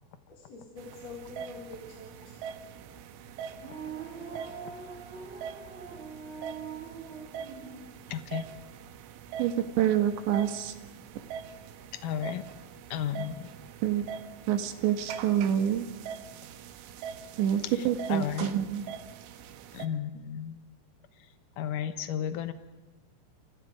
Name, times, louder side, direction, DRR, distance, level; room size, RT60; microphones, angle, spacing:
voice 1, 0.3-2.3, left 3 dB, 35° left, -2 dB, 4.8 m, -45 dB
sound 1, 0.8-19.9, right 7 dB, 90° right, 3.8 m, -43 dB
sound 2, 3.5-7.9, right 6 dB, 15° right, 2.4 m, -43 dB
voice 2, 8.1-8.4 12.0-12.4 12.9-13.4 18.1-18.5 19.7-20.6 21.6-22.5, left 9 dB, 80° left, 10 dB, 1.9 m, -33 dB
voice 3, 9.4-10.7 13.8-14.0 14.5-15.9 17.4-18.9, right 10 dB, 75° right, 9 dB, 3.7 m, -27 dB
29.0 x 27.5 x 5.0 m, 1.2 s
omnidirectional pair, 5.4 m